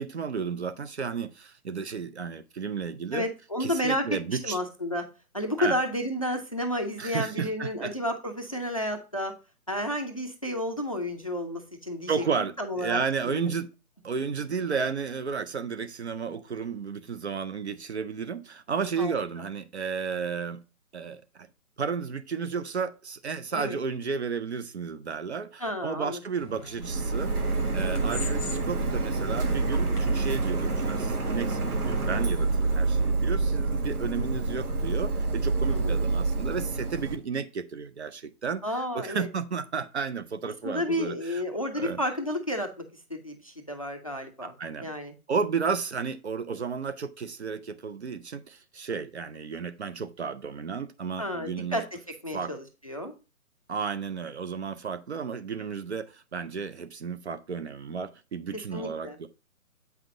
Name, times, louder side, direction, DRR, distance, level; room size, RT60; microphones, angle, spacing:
voice 1, 0.0-3.3 3.6-4.6 5.6-5.8 7.0-7.9 12.1-13.7 14.0-20.6 20.9-21.5 21.8-38.6 38.9-41.4 41.7-42.0 44.4-44.9 45.3-51.8 52.3-52.5 53.7-59.3, right 5 dB, 50° right, 0.6 m, -33 dB
voice 2, 3.1-5.1 5.3-9.3 9.7-12.1 12.6-13.5 19.0-19.2 23.5-23.8 25.6-26.2 35.7-36.0 38.6-39.3 40.6-42.7 43.1-44.5 44.8-45.1 51.2-51.8 52.2-53.1 58.7-59.2, equal, 25° left, 0.5 m, -31 dB
sound 1, 26.3-32.6, left 2 dB, 5° left, 0.9 m, -44 dB
Printer, 26.8-37.1, right 3 dB, 80° right, 1.8 m, -27 dB
8.1 x 5.7 x 2.5 m
hypercardioid pair, 155°, 44 cm